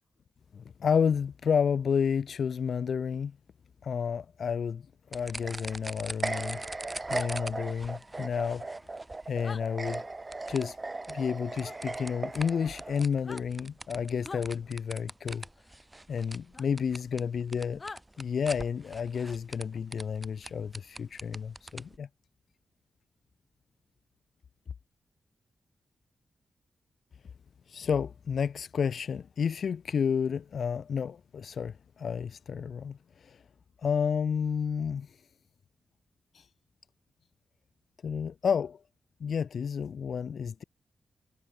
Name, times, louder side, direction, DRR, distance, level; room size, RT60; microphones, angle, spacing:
voice 1, 0.5-3.4 3.8-4.9 5.1-6.6 7.1-8.7 9.3-10.0 10.5-10.8 11.1-15.4 16.1-17.8 18.2-22.1 27.7-33.4 33.8-35.1 36.3-36.5 38.0-38.8 39.2-40.6, left 7 dB, 70° left, 2.8 m, -31 dB
sound 1, 5.1-22.0, right 1 dB, 20° right, 3.0 m, -45 dB
sound 2, 5.1-13.0, right 3 dB, 35° right, 4.3 m, -38 dB
sound 3, 7.1-7.3 9.4-9.6 11.6-11.8 13.1-13.4 14.2-14.5 16.5-16.7 17.8-18.0, left 3 dB, 45° left, 4.0 m, -42 dB
supercardioid pair, 45°, 0 cm